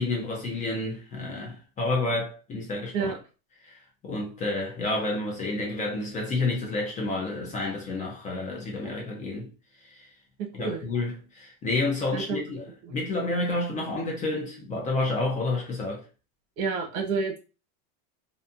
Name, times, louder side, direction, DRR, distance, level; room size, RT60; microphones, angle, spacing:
voice 1, 0.0-3.1 3.6-9.5 9.8-10.1 10.5-12.6 12.9-16.1, left 2 dB, 20° left, 0.4 m, -30 dB
voice 2, 10.4-10.8 12.1-12.4 16.6-17.4, right 5 dB, 85° right, 1.0 m, -29 dB
2.6 x 2.5 x 2.3 m
supercardioid pair, 150°, 42 cm